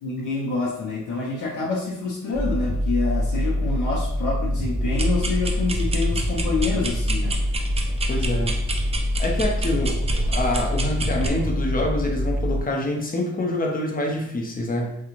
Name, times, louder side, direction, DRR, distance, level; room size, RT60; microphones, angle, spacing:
voice 1, 0.0-7.4, left 4 dB, 85° left, -5 dB, 0.8 m, -27 dB
sound 1, 2.3-12.6, left 1 dB, ahead, 1.3 m, -25 dB
sound 2, 4.9-11.3, right 2 dB, 20° right, 0.4 m, -30 dB
voice 2, 8.1-8.6 9.2-15.0, left 1 dB, 30° left, 1 dB, 0.8 m, -26 dB
3.7 x 2.3 x 3.0 m, 0.76 s
cardioid pair, 90°, 30 cm